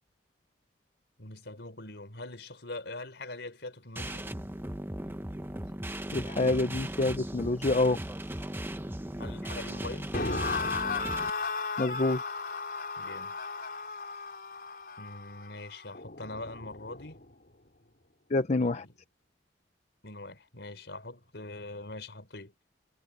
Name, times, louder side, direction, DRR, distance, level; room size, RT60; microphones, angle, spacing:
voice 1, 1.2-4.3 9.2-10.2 13.0-13.4 15.0-17.2 18.6-19.0 20.0-22.5, left 2 dB, 80° left, 4.2 m, -43 dB
sound 1, 4.0-11.3, right 1 dB, 15° right, 1.1 m, -37 dB
voice 2, 6.1-8.0 11.8-12.2 18.3-18.8, left 2 dB, 40° left, 0.6 m, -27 dB
sound 2, 10.1-17.2, left 4 dB, 60° left, 4.8 m, -35 dB
head